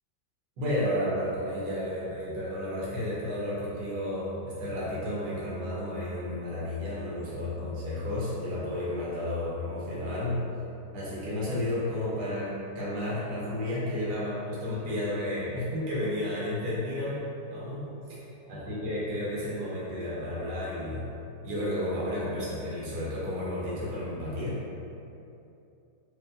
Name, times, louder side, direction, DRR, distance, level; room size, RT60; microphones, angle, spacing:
voice 1, 0.6-10.4 10.9-21.0 21.4-24.8, left 1 dB, 65° right, -8 dB, 1.6 m, -32 dB
4.6 x 2.8 x 2.6 m, 2.7 s
omnidirectional pair, 1.9 m